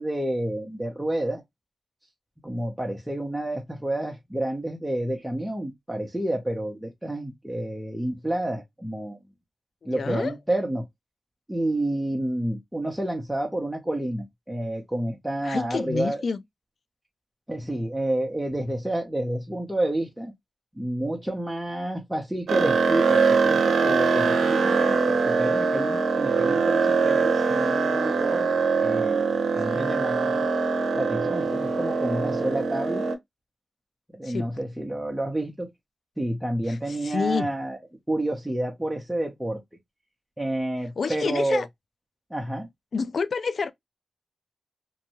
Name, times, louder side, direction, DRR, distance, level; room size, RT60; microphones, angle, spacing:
voice 1, 0.0-1.4 2.4-9.2 9.8-10.8 11.5-16.2 17.5-20.3 20.8-28.5 28.8-29.2 29.5-30.5 30.9-33.1 34.1-35.7 36.2-37.8 38.1-39.6 40.4-41.6 42.3-42.7, right 1 dB, 5° right, 0.7 m, -29 dB
voice 2, 9.8-10.4 15.4-16.4 29.7-30.0 34.2-34.6 36.7-37.5 41.0-41.7 42.9-43.7, left 5 dB, 65° left, 0.3 m, -29 dB
sound 1, 22.5-33.2, right 4 dB, 85° right, 0.5 m, -23 dB
2.6 x 2.2 x 2.9 m
cardioid pair, 55°, 0 cm